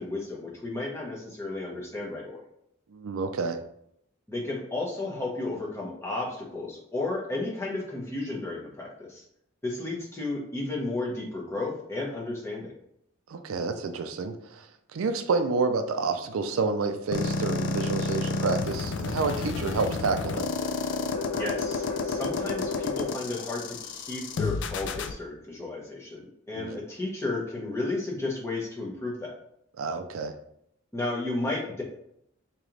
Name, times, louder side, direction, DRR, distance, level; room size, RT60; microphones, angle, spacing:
voice 1, 0.0-2.4 4.3-9.2 9.6-12.7 21.3-29.3 30.9-31.8, left 2 dB, 15° left, -3 dB, 0.9 m, -33 dB
voice 2, 2.9-3.6 13.3-14.7 14.9-20.5 26.6-26.8 29.8-30.3, right 4 dB, 85° right, 8 dB, 0.4 m, -29 dB
sound 1, 17.1-25.1, left 4 dB, 60° left, 0.3 m, -30 dB
sound 2, 18.7-25.3, left 2 dB, 80° left, 1.3 m, -44 dB
3.2 x 2.9 x 3.7 m, 0.71 s
head